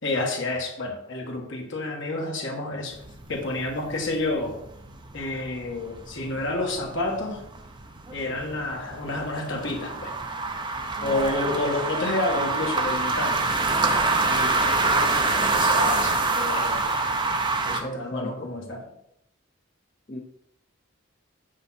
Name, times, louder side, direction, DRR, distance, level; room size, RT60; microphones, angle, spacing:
voice 1, 0.0-3.0 3.3-4.6 5.1-7.4 8.1-10.1 11.0-13.5 14.3-16.9 17.6-18.8, left 2 dB, 60° left, 0 dB, 1.9 m, -30 dB
sound 1, 2.9-17.8, right 3 dB, 25° right, 0.8 m, -26 dB
voice 2, 17.8-18.3 20.1-20.2, equal, 35° left, 0 dB, 0.7 m, -34 dB
8.6 x 5.4 x 4.4 m, 0.80 s
head